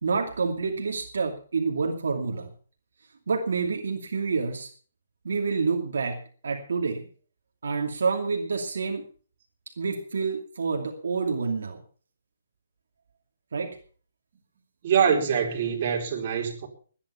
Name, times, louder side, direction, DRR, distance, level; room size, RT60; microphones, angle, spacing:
voice 1, 0.0-2.5 3.3-4.7 5.2-7.1 7.6-9.0 9.8-11.8 13.5-13.8, right 4 dB, 75° right, 2.5 m, -28 dB
voice 2, 14.8-16.7, right 7 dB, 45° right, 4.3 m, -24 dB
20.5 x 10.0 x 5.7 m
hypercardioid pair, 155°, 0 cm